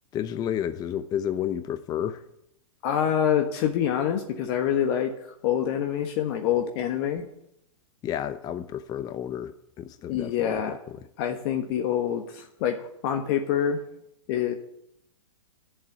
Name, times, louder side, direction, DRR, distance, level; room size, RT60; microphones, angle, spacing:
voice 1, 0.1-2.2 8.0-10.6, left 10 dB, 20° left, 11 dB, 0.6 m, -31 dB
voice 2, 2.8-7.2 10.1-10.8 11.2-13.8 14.3-14.5, left 9 dB, 45° left, 5 dB, 1.4 m, -26 dB
11.5 x 7.4 x 9.9 m, 0.77 s
hypercardioid pair, 125°, 18 cm